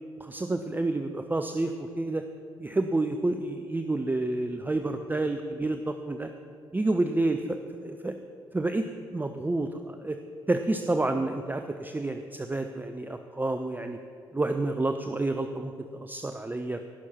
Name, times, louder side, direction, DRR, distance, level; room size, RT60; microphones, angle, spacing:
voice 1, 0.2-2.2 2.6-6.3 6.7-8.1 8.5-8.9 9.1-10.2 10.5-14.0 14.3-15.7 16.0-16.8, right 2 dB, 15° right, 7 dB, 0.6 m, -29 dB
17.5 x 6.4 x 5.7 m, 2.5 s
figure-of-eight pair, 45°, 11 cm